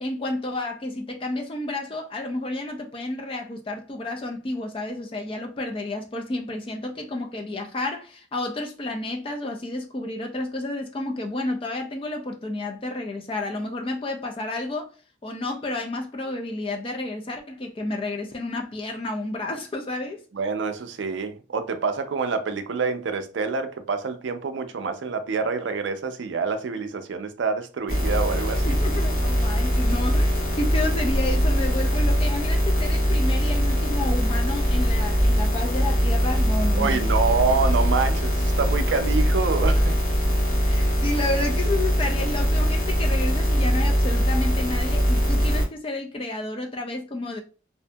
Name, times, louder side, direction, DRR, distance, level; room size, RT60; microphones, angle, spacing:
voice 1, 0.0-14.9 15.2-20.2 28.6-37.0 40.7-47.4, left 2 dB, 30° left, 0.4 m, -31 dB
voice 2, 20.3-28.7 36.7-40.0, right 4 dB, 70° right, 0.4 m, -26 dB
sound 1, 27.9-45.7, equal, 45° left, 1.0 m, -22 dB
2.6 x 2.5 x 2.2 m
head